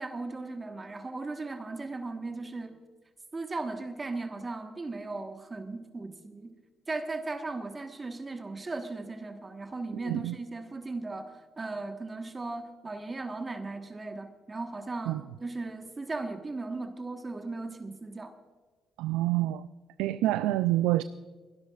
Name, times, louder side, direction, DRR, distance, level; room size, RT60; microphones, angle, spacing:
voice 1, 0.0-2.8 3.3-6.6 6.9-18.3, right 3 dB, 30° right, 6 dB, 1.3 m, -37 dB
voice 2, 10.1-10.4 15.1-15.2 19.0-19.7 20.0-21.0, right 15 dB, 85° right, 13 dB, 0.3 m, -27 dB
27.5 x 12.0 x 2.4 m, 1.5 s
supercardioid pair, 60°, 0 cm